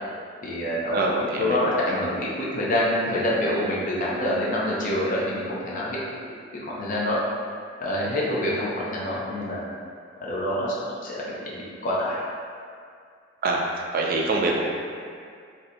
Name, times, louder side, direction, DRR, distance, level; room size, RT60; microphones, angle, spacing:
voice 1, 0.4-6.0 6.5-7.2 7.8-9.6 10.2-12.2, left 1 dB, 45° left, -6 dB, 0.5 m, -26 dB
voice 2, 0.9-1.6 13.4-13.7 13.9-14.6, right 3 dB, 50° right, -1 dB, 0.4 m, -24 dB
2.7 x 2.6 x 3.3 m, 2.2 s
head